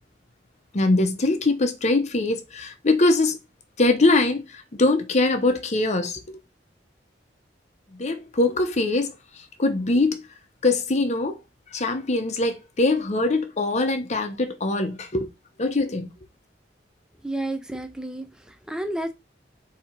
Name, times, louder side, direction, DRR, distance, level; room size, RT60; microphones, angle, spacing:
voice 1, 0.7-3.4 3.8-6.4 7.9-9.1 9.6-10.2 10.6-11.4 11.7-15.3 15.6-16.1, left 2 dB, 40° left, 0.8 m, -22 dB
voice 2, 17.2-19.1, right 1 dB, 5° right, 0.5 m, -31 dB
4.1 x 2.8 x 4.4 m
head